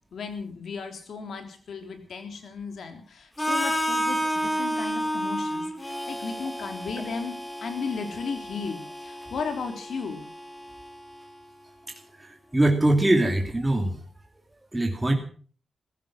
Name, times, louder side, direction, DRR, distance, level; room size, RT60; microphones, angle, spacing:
voice 1, 0.1-10.3, left 5 dB, 80° left, 6 dB, 3.5 m, -35 dB
Harmonica, 3.4-11.3, equal, 10° left, 2.6 m, -31 dB
voice 2, 12.1-14.0 14.7-15.1, right 1 dB, 15° right, 2 dB, 2.6 m, -22 dB
15.5 x 15.5 x 5.9 m, 0.43 s
wide cardioid pair, 120°, 0 cm